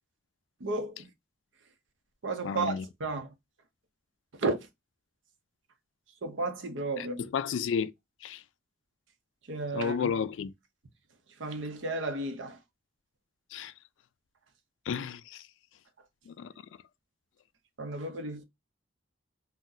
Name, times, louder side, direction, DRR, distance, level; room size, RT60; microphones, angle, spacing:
voice 1, 0.6-1.1 2.2-3.3 4.4-4.6 6.2-7.2 9.5-10.1 11.4-12.6 17.8-18.4, right 3 dB, 90° right, 0.7 m, -33 dB
voice 2, 2.4-2.9 7.0-7.9 8.2-8.4 9.7-10.5 13.5-13.7 14.9-15.4 16.3-16.5, left 6 dB, 85° left, 0.3 m, -32 dB
3.7 x 2.1 x 2.6 m
head